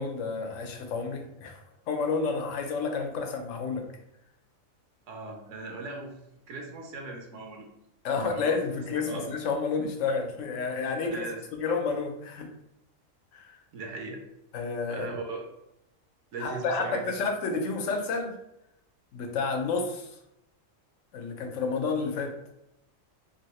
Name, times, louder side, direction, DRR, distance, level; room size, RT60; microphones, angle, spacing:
voice 1, 0.0-1.6 1.9-3.9 8.0-11.3 11.6-12.5 13.3-13.5 14.5-15.1 16.4-18.3 19.1-20.1 21.1-22.3, left 4 dB, 75° left, 4 dB, 0.9 m, -30 dB
voice 2, 5.1-6.2 6.5-7.7 8.3-8.6 9.0-9.3 11.1-11.4 13.7-14.2 14.9-15.4 16.3-17.1, right 3 dB, 75° right, 2 dB, 0.9 m, -38 dB
3.0 x 2.7 x 3.0 m, 0.84 s
omnidirectional pair, 1.4 m